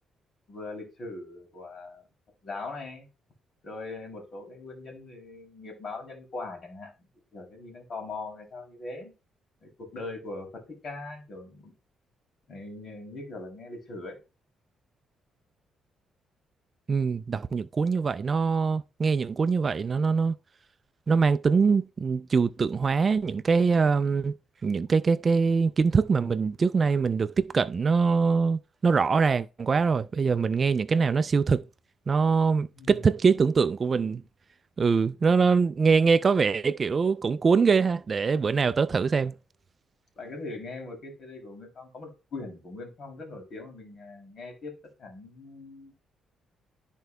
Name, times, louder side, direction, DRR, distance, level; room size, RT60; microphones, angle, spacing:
voice 1, 0.5-2.0 2.4-3.1 3.6-6.9 7.3-9.1 9.6-11.7 12.5-14.2 32.7-33.0 40.2-44.7 45.0-46.0, left 3 dB, 50° left, 2.8 m, -40 dB
voice 2, 16.9-20.3 21.1-24.3 24.6-31.6 32.1-34.2 34.8-39.3, right 5 dB, 40° right, 0.3 m, -23 dB
13.0 x 4.5 x 2.2 m
cardioid pair, 90°, 0 cm